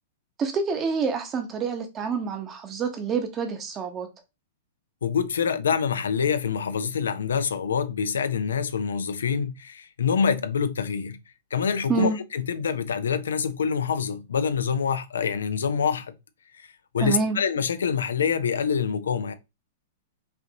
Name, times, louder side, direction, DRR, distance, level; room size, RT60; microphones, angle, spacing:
voice 1, 0.4-4.1 11.9-12.2 17.0-17.4, right 5 dB, 25° right, 1.1 m, -27 dB
voice 2, 5.0-11.2 11.5-16.1 16.9-19.3, left 6 dB, 85° left, 0.6 m, -26 dB
5.5 x 2.6 x 2.9 m
hypercardioid pair, 120°, 0 cm